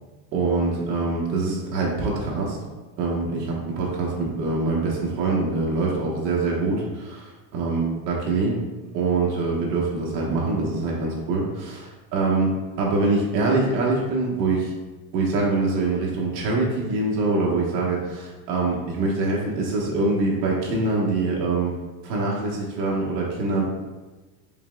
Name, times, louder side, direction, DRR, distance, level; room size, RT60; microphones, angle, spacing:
voice 1, 0.3-2.6 3.0-8.6 8.9-14.7 15.1-21.7 22.0-23.6, right 3 dB, 90° right, -4 dB, 1.3 m, -24 dB
5.5 x 3.5 x 2.3 m, 1.2 s
supercardioid pair, 145°, 48 cm